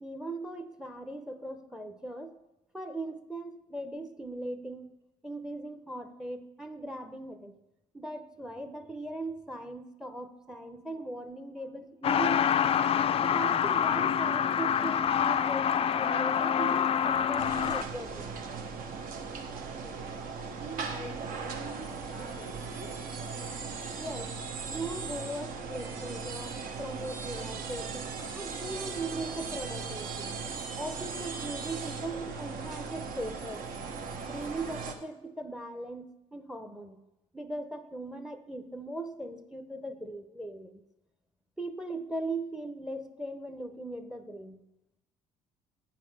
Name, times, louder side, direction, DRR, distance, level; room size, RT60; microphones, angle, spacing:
voice 1, 0.0-2.4 2.7-4.9 5.2-7.5 7.9-12.6 13.2-18.4 24.0-24.4 24.7-30.3 30.8-33.6 34.2-37.0 37.3-40.8 41.6-44.6, right 2 dB, 5° right, 10 dB, 0.7 m, -39 dB
Truck, 12.0-17.8, left 8 dB, 40° left, 0.4 m, -26 dB
sound 1, 17.4-34.9, right 5 dB, 60° right, 1.0 m, -38 dB
voice 2, 19.7-20.2 20.6-23.0, right 2 dB, 85° right, -3 dB, 2.2 m, -46 dB
8.3 x 4.1 x 6.2 m, 0.91 s
supercardioid pair, 70°, 16 cm